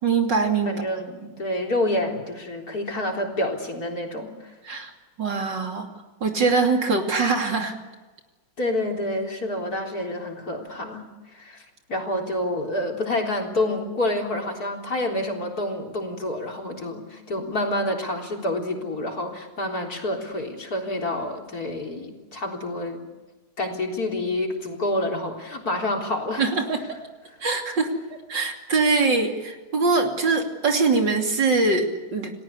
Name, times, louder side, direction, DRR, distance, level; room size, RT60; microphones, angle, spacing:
voice 1, 0.0-0.8 1.2-1.3 4.6-4.9 5.2-5.9 6.2-7.7 26.4-26.8 27.4-28.0 28.3-32.3, right 4 dB, 60° right, 3 dB, 3.5 m, -23 dB
voice 2, 0.7-4.5 8.6-11.1 11.3-23.0 23.6-26.5, left 1 dB, 45° left, 1 dB, 4.3 m, -28 dB
29.5 x 19.0 x 8.4 m, 1.2 s
omnidirectional pair, 2.2 m